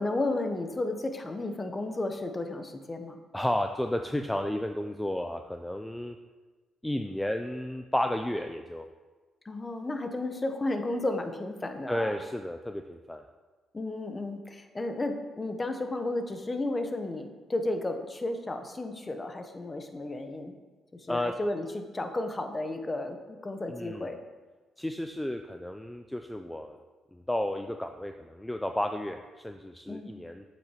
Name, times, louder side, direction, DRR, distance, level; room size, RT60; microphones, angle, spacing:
voice 1, 0.0-3.2 9.4-12.2 13.7-20.5 20.9-24.2 29.9-30.1, left 2 dB, 25° left, 6 dB, 0.8 m, -33 dB
voice 2, 3.3-6.2 6.8-8.9 11.9-13.2 21.1-21.3 23.7-24.1 24.8-26.8 27.1-30.4, left 1 dB, 5° left, 6 dB, 0.3 m, -32 dB
7.8 x 6.1 x 2.9 m, 1.3 s
cardioid pair, 90°, 0 cm